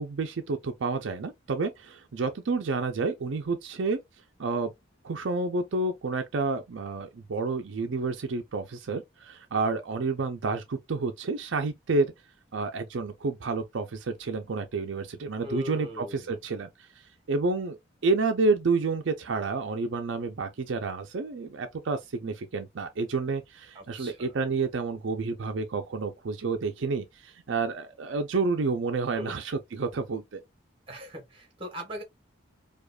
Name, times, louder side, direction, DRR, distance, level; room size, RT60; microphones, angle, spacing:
voice 1, 0.0-4.0 4.4-4.7 5.0-12.1 12.5-16.7 17.3-30.4, right 3 dB, 70° right, 0.5 m, -29 dB
voice 2, 15.4-16.4 23.7-24.4 29.1-29.4 30.9-32.0, left 1 dB, 25° right, 1.3 m, -40 dB
4.9 x 2.4 x 2.3 m
head